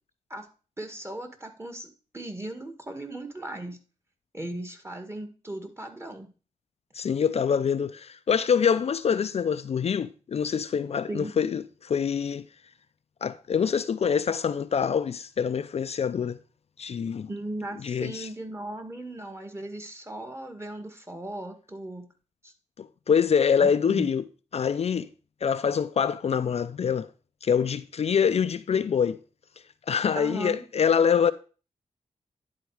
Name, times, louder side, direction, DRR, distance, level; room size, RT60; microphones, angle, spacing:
voice 1, 0.8-3.8 4.3-6.3 11.1-11.3 17.3-22.1 22.4-22.5 23.6-24.1 30.1-30.6, right 1 dB, 20° right, 1.8 m, -37 dB
voice 2, 6.9-12.4 13.2-16.4 16.8-17.3 17.8-18.3 22.8-24.2 24.5-25.1 25.4-27.1 27.4-29.2 29.9-31.3, left 7 dB, 55° left, 0.4 m, -25 dB
10.5 x 4.0 x 4.8 m
cardioid pair, 55°, 13 cm